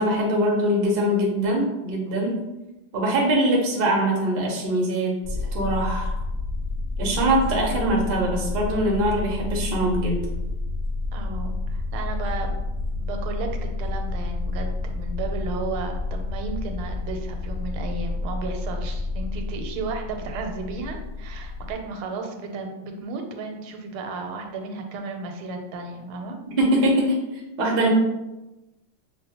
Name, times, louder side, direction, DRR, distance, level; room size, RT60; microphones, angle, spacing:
voice 1, 0.0-2.4 2.9-6.1 7.0-10.2 26.6-27.9, right 1 dB, 70° right, -1 dB, 0.5 m, -23 dB
sound 1, 5.2-21.7, left 2 dB, 30° left, 1.2 m, -30 dB
voice 2, 11.1-12.6 13.0-26.4, right 3 dB, 90° right, 4 dB, 1.5 m, -34 dB
5.6 x 2.1 x 2.8 m, 1.0 s
omnidirectional pair, 2.2 m